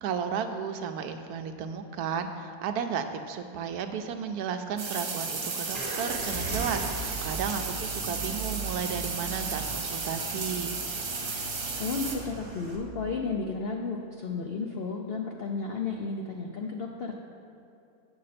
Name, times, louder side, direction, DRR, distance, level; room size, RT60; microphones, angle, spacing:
voice 1, 0.0-10.7, right 7 dB, 75° right, 7 dB, 1.1 m, -33 dB
sound 1, 4.8-12.2, right 4 dB, 60° right, 1.4 m, -34 dB
sound 2, 5.7-12.8, right 3 dB, 35° right, 1.5 m, -39 dB
voice 2, 11.8-17.1, left 4 dB, 70° left, 1 dB, 0.5 m, -33 dB
7.9 x 7.5 x 4.1 m, 2.6 s
omnidirectional pair, 1.7 m